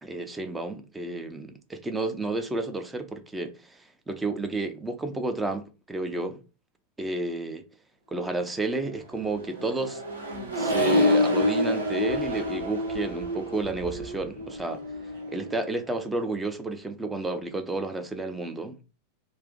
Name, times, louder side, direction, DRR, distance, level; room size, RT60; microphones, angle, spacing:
voice 1, 0.0-6.4 7.0-7.6 8.1-10.0 10.6-14.8 15.3-18.8, right 2 dB, 10° right, 0.5 m, -31 dB
Accelerating revving vroom, 9.1-15.8, left 1 dB, 70° right, 0.9 m, -27 dB
2.6 x 2.5 x 3.7 m
figure-of-eight pair, 90°, 0 cm